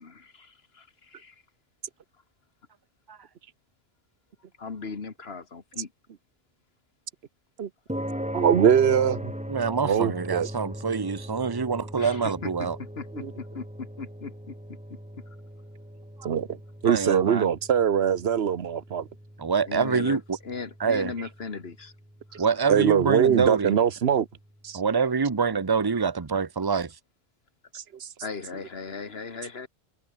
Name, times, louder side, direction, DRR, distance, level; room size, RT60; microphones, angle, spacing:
voice 1, 0.0-1.4 4.6-5.9 12.0-12.5 12.8-14.6 19.7-20.2 20.4-21.9 22.3-22.4 28.2-29.7, left 4 dB, 80° left, 2.0 m, -38 dB
sound 1, 7.9-24.4, equal, 5° right, 4.0 m, -40 dB
voice 2, 8.3-9.3 9.8-10.5 13.2-13.3 16.2-16.6 16.8-19.1 22.7-24.3 24.6-24.8 27.7-28.1, right 8 dB, 85° right, 1.2 m, -22 dB
voice 3, 9.5-12.8 16.2-16.3 16.8-17.5 19.4-20.4 20.8-21.1 22.4-23.8 24.7-27.0, right 5 dB, 25° right, 0.9 m, -26 dB
omnidirectional pair, 1.0 m